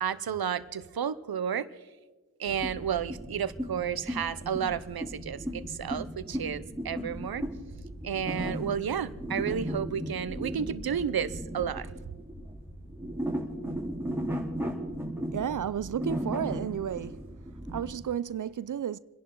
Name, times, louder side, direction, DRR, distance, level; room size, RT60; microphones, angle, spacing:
voice 1, 0.0-1.7 2.4-7.5 8.0-11.9, right 8 dB, 80° right, 0.8 m, -32 dB
sound 1, 2.5-18.0, equal, 5° right, 3.3 m, -36 dB
sound 2, 6.3-12.6, left 1 dB, 55° left, 2.6 m, -50 dB
voice 2, 15.3-17.3 17.7-19.0, right 9 dB, 55° right, 0.5 m, -32 dB
29.0 x 11.0 x 3.8 m
wide cardioid pair, 60°, 36 cm